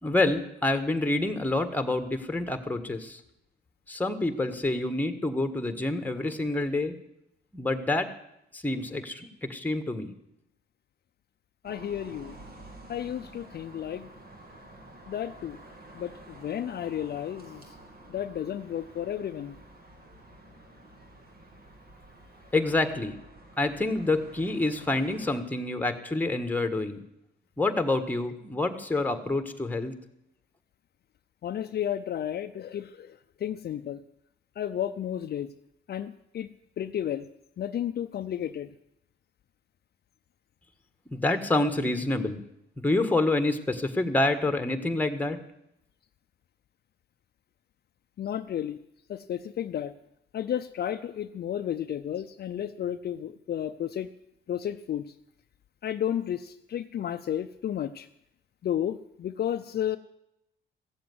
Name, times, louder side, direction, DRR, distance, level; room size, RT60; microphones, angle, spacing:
voice 1, 0.0-3.2 3.9-6.9 7.5-8.1 8.5-10.1 22.5-23.1 23.6-27.0 27.6-29.9 41.1-42.4 42.8-45.4, left 2 dB, 10° left, 8 dB, 1.6 m, -27 dB
voice 2, 11.6-12.4 12.9-14.1 15.1-15.6 15.9-17.6 18.1-19.6 31.4-34.0 34.6-35.5 35.9-36.5 36.8-37.3 37.6-38.7 48.2-48.8 49.1-49.9 50.3-54.1 54.5-55.1 55.8-58.1 58.6-60.0, left 10 dB, 55° left, 9 dB, 0.6 m, -32 dB
sound 1, 11.6-25.4, right 1 dB, 50° right, 2.9 m, -50 dB
15.5 x 7.8 x 9.4 m, 0.82 s
cardioid pair, 90°, 20 cm